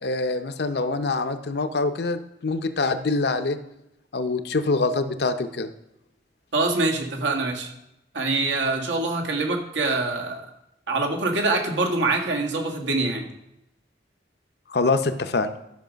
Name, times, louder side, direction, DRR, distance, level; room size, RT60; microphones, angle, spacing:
voice 1, 0.0-3.6 4.1-5.7 14.7-15.5, left 3 dB, 65° left, 9 dB, 0.7 m, -25 dB
voice 2, 6.5-7.7 8.1-10.4 10.9-13.3, right 3 dB, 85° right, 1 dB, 1.7 m, -24 dB
11.5 x 6.4 x 5.1 m, 0.85 s
head